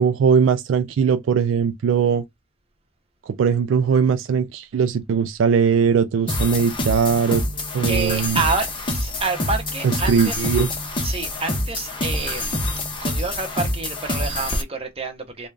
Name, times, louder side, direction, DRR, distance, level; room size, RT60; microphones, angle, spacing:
voice 1, 0.0-2.2 3.3-7.4 7.7-8.4 10.1-10.7, right 6 dB, 75° right, 0.3 m, -20 dB
sound 1, 6.3-14.6, left 1 dB, 25° left, 0.7 m, -26 dB
voice 2, 7.9-10.4 11.0-12.7 13.0-15.5, right 3 dB, 30° right, 0.9 m, -28 dB
3.8 x 2.2 x 3.3 m
head